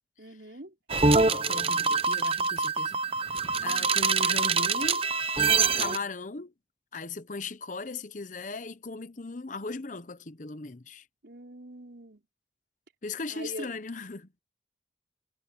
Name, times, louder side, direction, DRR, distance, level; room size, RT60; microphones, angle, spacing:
voice 1, 0.2-0.7 3.5-3.9 11.2-12.2 13.3-13.7, right 1 dB, 65° right, 4.0 m, -43 dB
sound 1, 0.9-6.0, right 4 dB, 30° right, 0.8 m, -25 dB
voice 2, 1.2-5.1 5.4-6.5 6.9-11.1 13.0-14.3, left 3 dB, 45° left, 0.9 m, -38 dB
head